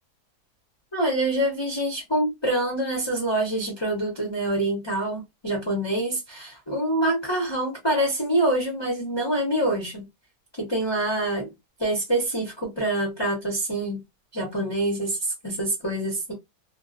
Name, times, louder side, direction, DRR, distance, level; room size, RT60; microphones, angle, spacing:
voice 1, 0.9-10.1 10.6-11.5 11.8-14.0 14.3-16.3, right 1 dB, 25° left, 0.7 m, -26 dB
2.4 x 2.3 x 2.5 m
omnidirectional pair, 1.6 m